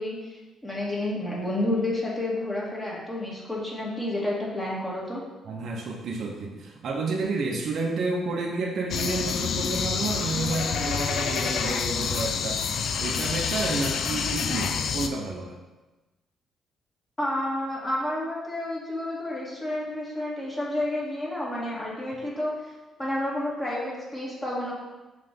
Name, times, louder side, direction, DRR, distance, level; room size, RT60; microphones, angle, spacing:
voice 1, 0.0-5.2 17.2-22.7 23.0-24.7, left 1 dB, 15° left, -5 dB, 2.0 m, -30 dB
voice 2, 5.5-12.7 13.0-15.6, right 3 dB, 60° right, 0 dB, 0.8 m, -30 dB
sound 1, 8.9-15.1, left 6 dB, 65° left, 0.4 m, -28 dB
5.7 x 3.3 x 5.3 m, 1.1 s
cardioid pair, 90°, 0 cm